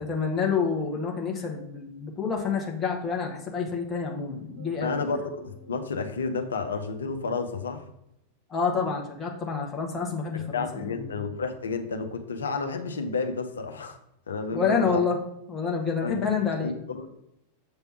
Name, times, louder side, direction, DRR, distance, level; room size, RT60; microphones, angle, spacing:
voice 1, 0.1-5.1 8.5-11.2 14.5-15.2 15.5-16.7, left 5 dB, 20° left, 0 dB, 1.2 m, -28 dB
sound 1, 4.6-7.1, left 1 dB, 25° right, 2.9 m, -52 dB
voice 2, 4.8-7.9 10.3-14.0 14.3-15.0 16.0-16.3 16.6-17.1, left 4 dB, 70° left, 7 dB, 0.8 m, -31 dB
6.9 x 3.4 x 6.0 m, 0.78 s
figure-of-eight pair, 90°, 0 cm